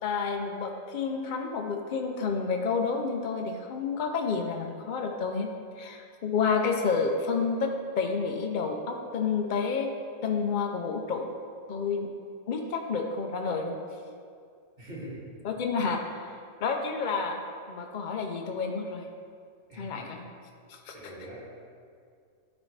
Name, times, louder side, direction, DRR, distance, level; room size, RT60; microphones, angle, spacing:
voice 1, 0.0-5.5 5.8-9.9 10.2-11.3 11.7-12.1 12.5-13.8 15.4-16.0 16.6-17.4 17.7-19.0 19.8-20.2 20.7-21.1, left 5 dB, 75° left, 3 dB, 0.4 m, -30 dB
voice 2, 14.8-15.3 15.8-15.9 19.7-20.1 20.9-21.5, right 1 dB, 30° right, -7 dB, 1.8 m, -43 dB
12.5 x 4.2 x 3.2 m, 2.3 s
omnidirectional pair, 1.6 m